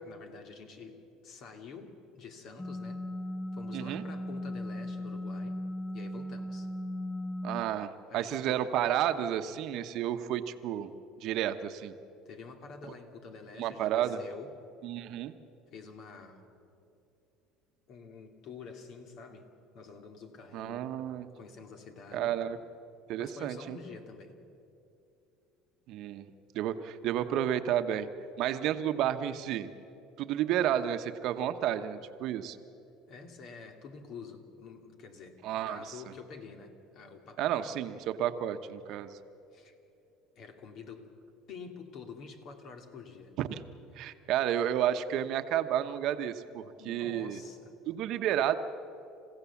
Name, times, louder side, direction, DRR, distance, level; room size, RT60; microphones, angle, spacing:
voice 1, 0.0-3.1 3.5-5.6 5.9-6.7 8.1-8.7 12.3-14.5 15.7-16.5 17.9-19.5 19.7-20.9 21.3-22.4 23.2-24.4 33.1-35.4 35.7-37.7 39.5-39.8 40.4-41.2 41.5-43.3 43.9-44.2 46.8-47.7, left 5 dB, 55° left, 5 dB, 2.6 m, -48 dB
sound 1, 2.6-7.6, left 1 dB, 15° left, 1.2 m, -37 dB
voice 2, 3.7-4.0 7.4-10.9 11.2-11.9 13.6-14.2 14.8-15.3 20.5-21.3 22.1-22.6 23.1-23.8 25.9-26.2 26.5-28.1 28.4-29.7 30.2-32.6 35.4-35.9 37.4-39.2 43.4-43.6 44.0-47.4 47.9-48.6, right 11 dB, 60° right, 9 dB, 1.0 m, -31 dB
29.0 x 16.0 x 7.2 m, 2.7 s
supercardioid pair, 120°, 0 cm